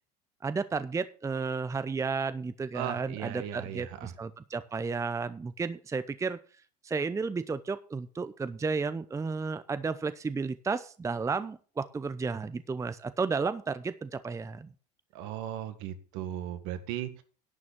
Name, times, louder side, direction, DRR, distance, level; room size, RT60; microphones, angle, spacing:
voice 1, 0.4-6.4 6.8-14.7, right 4 dB, 15° right, 13 dB, 0.6 m, -33 dB
voice 2, 2.7-4.1 15.1-17.2, right 11 dB, 65° right, 10 dB, 1.7 m, -37 dB
11.0 x 6.2 x 7.2 m, 0.40 s
hypercardioid pair, 85°, 20 cm